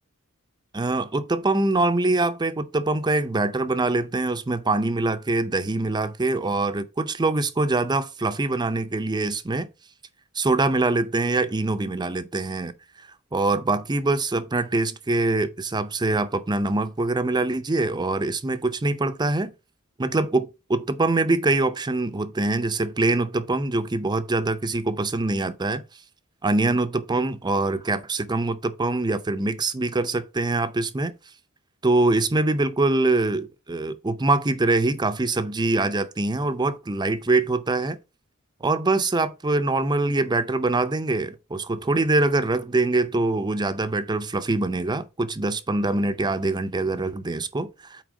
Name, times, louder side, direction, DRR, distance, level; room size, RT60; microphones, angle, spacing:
voice 1, 0.7-9.7 10.3-12.7 13.0-19.5 20.0-25.8 26.4-31.1 31.8-38.0 38.6-48.0, right 2 dB, 20° right, 0.5 m, -24 dB
6.2 x 4.5 x 4.9 m
head